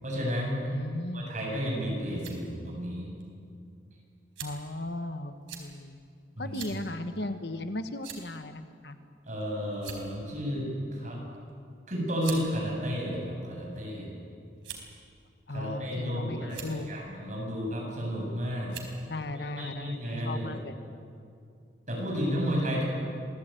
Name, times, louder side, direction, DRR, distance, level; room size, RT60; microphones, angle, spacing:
voice 1, 0.0-0.6 1.1-3.1 6.4-6.6 9.3-11.2 11.9-14.1 15.5-18.7 19.3-20.5 21.9-22.8, equal, 40° right, -2 dB, 7.8 m, -32 dB
voice 2, 0.7-1.3 4.4-5.3 5.6-6.0 6.4-9.0 15.5-16.9 19.1-20.7, left 2 dB, 60° left, 9 dB, 1.3 m, -36 dB
sound 1, 2.1-2.4 3.2-3.3 4.4-4.7 5.5-5.7 6.5-6.8 7.1-7.3 8.0-8.4 9.3-9.4 9.7-10.2 11.3-11.5 12.2-12.4 13.3-13.8 14.6-15.0 15.8-16.1 16.4-16.7 17.9-18.2 18.7-19.0, right 8 dB, 85° right, 4.4 m, -43 dB
26.5 x 18.0 x 9.1 m, 2.4 s
head